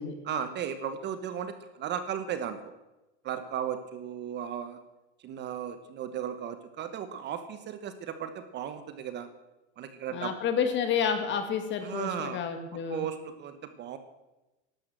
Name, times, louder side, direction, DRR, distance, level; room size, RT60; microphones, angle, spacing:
voice 1, 0.2-2.7 3.2-4.8 5.2-9.3 9.8-10.3 11.8-12.4 12.9-14.0, right 8 dB, 30° right, 10 dB, 1.0 m, -35 dB
voice 2, 10.1-13.0, left 7 dB, 30° left, 8 dB, 2.1 m, -30 dB
12.0 x 12.0 x 7.7 m, 1.0 s
supercardioid pair, 145°, 36 cm